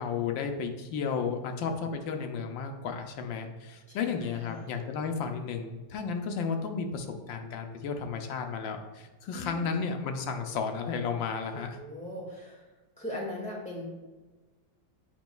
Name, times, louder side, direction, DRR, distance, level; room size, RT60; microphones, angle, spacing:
voice 1, 0.0-11.8, left 5 dB, 90° left, 5 dB, 1.4 m, -33 dB
voice 2, 3.9-4.8 9.3-9.8 11.5-12.6 13.0-13.9, left 1 dB, 5° left, -4 dB, 1.7 m, -40 dB
9.1 x 5.2 x 2.3 m, 1.2 s
omnidirectional pair, 2.0 m